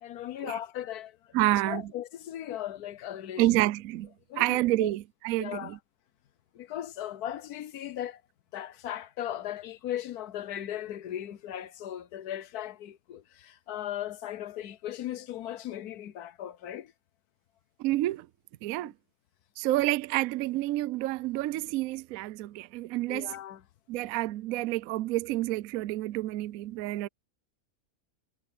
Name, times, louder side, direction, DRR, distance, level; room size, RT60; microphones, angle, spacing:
voice 1, 0.0-1.3 1.6-3.4 4.3-4.9 5.4-5.8 6.5-8.2 8.5-16.9 18.7-18.9 23.1-23.6 27.0-27.1, left 11 dB, 70° left, 1.3 m, -38 dB
voice 2, 1.3-1.8 3.4-4.1 4.4-5.8 17.8-18.3 18.6-18.9 19.6-23.3 23.9-27.1, right 17 dB, 70° right, 0.9 m, -29 dB
omnidirectional pair, 1.7 m